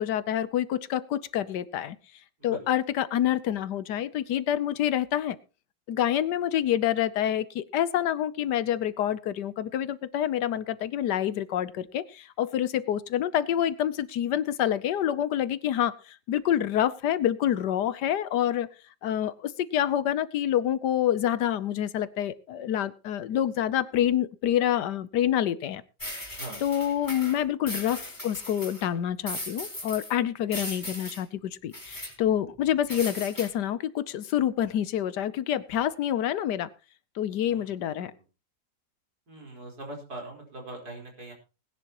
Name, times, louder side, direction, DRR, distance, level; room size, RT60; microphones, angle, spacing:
voice 1, 0.0-2.0 2.4-5.4 5.9-18.7 19.0-25.8 26.6-36.7 37.2-38.1, left 11 dB, 70° left, 16 dB, 1.3 m, -27 dB
sound 1, 26.0-28.9 29.3-30.1 30.5-31.2 31.7-32.1 32.9-33.5, left 1 dB, 10° left, 4.3 m, -38 dB
voice 2, 37.5-38.1 39.3-41.3, right 2 dB, 55° right, 0 dB, 5.0 m, -42 dB
20.0 x 10.5 x 3.0 m, 0.31 s
omnidirectional pair, 2.0 m